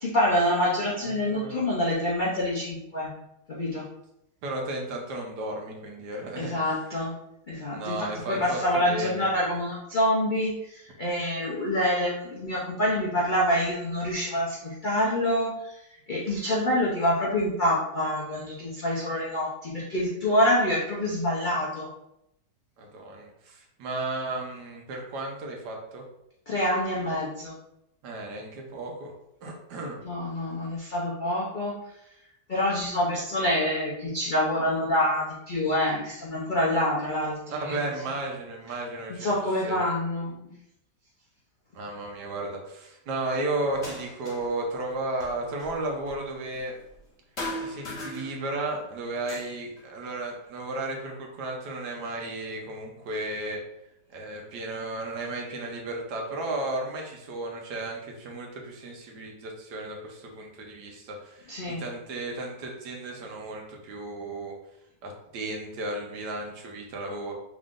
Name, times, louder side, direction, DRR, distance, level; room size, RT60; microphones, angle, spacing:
voice 1, 0.0-3.1 3.5-3.8 6.4-7.1 7.5-15.8 16.1-21.9 26.5-27.6 30.0-31.7 32.5-37.8 39.2-40.5 61.5-61.8, left 1 dB, 75° left, -6 dB, 0.4 m, -26 dB
voice 2, 1.0-1.6 4.4-6.5 7.7-9.2 22.8-26.0 28.0-29.1 29.4-30.0 37.5-39.8 41.7-46.7 47.6-53.6 54.1-64.5 65.0-67.3, right 2 dB, 70° right, 0 dB, 1.3 m, -34 dB
sound 1, 43.7-44.6 44.9-47.1 47.4-48.7 49.1-51.0 51.6-52.5 53.5-53.6 54.2-55.2, left 1 dB, 45° left, 1.3 m, -41 dB
3.7 x 3.6 x 2.5 m, 0.82 s
omnidirectional pair, 1.9 m